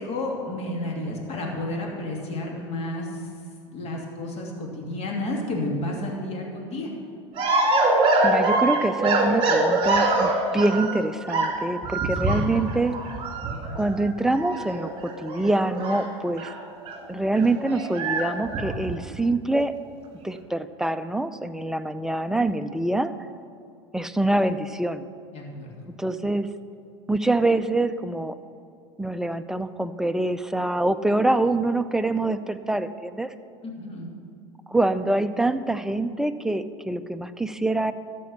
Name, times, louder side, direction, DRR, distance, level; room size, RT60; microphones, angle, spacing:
voice 1, 0.0-3.3 3.7-6.9 12.2-12.4 25.3-25.7 33.6-34.1, left 1 dB, 45° left, -1 dB, 2.7 m, -31 dB
sound 1, 7.3-11.0 11.3-16.6 16.8-17.0 17.2-19.1, right 2 dB, 35° right, 2.1 m, -24 dB
voice 2, 8.2-13.0 13.8-16.5 17.1-19.8 20.2-23.1 23.9-25.1 26.0-26.5 27.1-28.4 29.0-33.3 34.7-37.9, right 2 dB, 5° right, 10 dB, 0.4 m, -25 dB
13.5 x 5.3 x 7.1 m, 2.4 s
hypercardioid pair, 90°, 16 cm